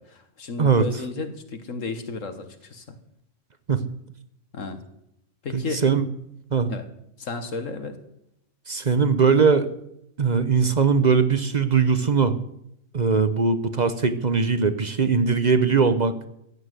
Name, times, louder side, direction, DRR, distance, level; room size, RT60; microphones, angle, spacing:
voice 1, 0.0-3.0 4.5-4.8 5.4-5.8 6.7-6.9 7.2-8.0, left 3 dB, 85° left, 8 dB, 2.0 m, -33 dB
voice 2, 5.5-6.0 6.5-6.7 8.7-9.7 10.2-12.3 12.9-16.1, right 5 dB, 40° right, 11 dB, 0.9 m, -20 dB
15.0 x 9.7 x 8.1 m, 0.79 s
omnidirectional pair, 1.3 m